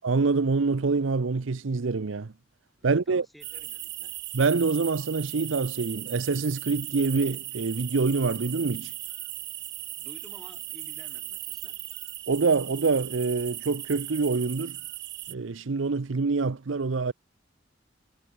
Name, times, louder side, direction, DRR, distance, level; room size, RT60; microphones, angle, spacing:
voice 1, 0.0-2.3 2.8-3.3 4.3-8.9 12.3-14.8 15.3-17.1, right 4 dB, 80° right, 0.7 m, -26 dB
voice 2, 2.8-4.2 10.0-11.8, equal, ahead, 6.0 m, -53 dB
sound 1, 3.4-15.3, right 16 dB, 60° right, 4.1 m, -38 dB
head